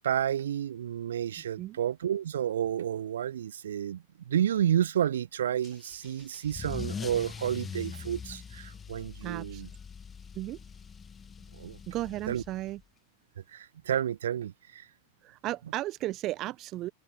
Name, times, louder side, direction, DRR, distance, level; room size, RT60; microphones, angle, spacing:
voice 1, 0.0-9.7 11.5-11.8 12.3-12.4 13.5-14.8, right 10 dB, 65° right, 1.3 m, -30 dB
Car / Engine starting / Accelerating revving vroom, 5.6-12.8, left 6 dB, 20° left, 2.2 m, -42 dB
voice 2, 9.2-9.6 10.3-10.6 11.9-12.8 15.2-16.9, right 16 dB, 35° right, 1.1 m, -35 dB
open air
figure-of-eight pair, 90°, 0 cm